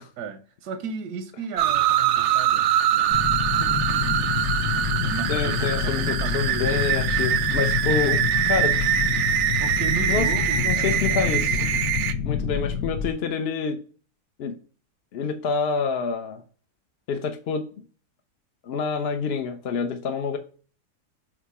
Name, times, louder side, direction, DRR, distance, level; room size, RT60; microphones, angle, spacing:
voice 1, 0.2-3.3 3.6-6.8 9.6-11.8 12.7-12.8, right 6 dB, 85° right, 1.3 m, -35 dB
sound 1, 1.6-12.1, right 10 dB, 70° right, 0.6 m, -23 dB
sound 2, 3.1-13.1, left 8 dB, 80° left, 1.2 m, -28 dB
voice 2, 5.3-8.2 8.5-8.8 10.1-10.3 10.6-11.6 12.2-13.8 14.4-14.5 15.1-16.4 17.1-17.7 18.6-20.4, left 5 dB, 55° left, 0.7 m, -27 dB
7.3 x 2.9 x 4.6 m
omnidirectional pair, 1.7 m